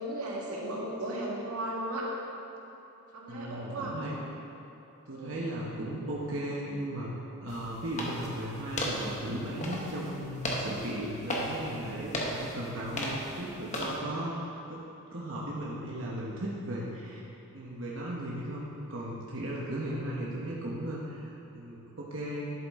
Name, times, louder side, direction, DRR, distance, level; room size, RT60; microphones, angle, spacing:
voice 1, 0.0-2.1 3.1-4.0 5.1-5.5, right 1 dB, 90° right, -4 dB, 1.9 m, -36 dB
voice 2, 3.3-4.2 5.1-7.1 7.4-14.8 15.1-17.2 17.5-22.5, right 1 dB, 60° right, -5 dB, 1.0 m, -36 dB
sound 1, 7.5-14.0, equal, 30° left, 1.1 m, -36 dB
11.0 x 8.4 x 3.6 m, 2.9 s
head